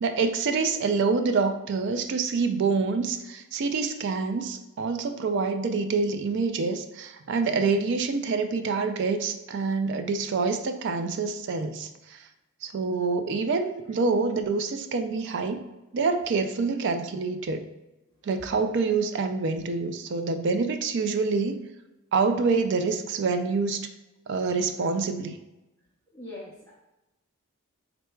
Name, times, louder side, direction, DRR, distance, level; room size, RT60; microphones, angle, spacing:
voice 1, 0.0-12.3 12.6-15.6 15.9-17.7 18.2-21.6 22.1-23.9 24.3-25.4, right 4 dB, 55° right, 8 dB, 0.3 m, -26 dB
voice 2, 26.1-26.7, left 1 dB, 10° left, -9 dB, 0.7 m, -41 dB
4.4 x 3.9 x 2.2 m, 0.99 s
head